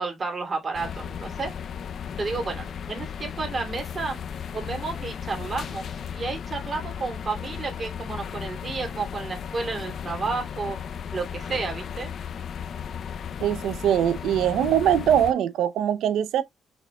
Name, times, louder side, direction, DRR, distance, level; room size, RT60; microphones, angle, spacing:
voice 1, 0.0-1.5 2.2-4.2 4.5-5.9 6.1-10.8 11.1-12.1, right 4 dB, 40° right, 2.6 m, -31 dB
sound 1, 0.7-15.3, left 7 dB, 60° left, 0.4 m, -35 dB
voice 2, 13.4-16.4, right 10 dB, 80° right, 0.5 m, -22 dB
5.6 x 4.2 x 2.2 m
cardioid pair, 90°, 0 cm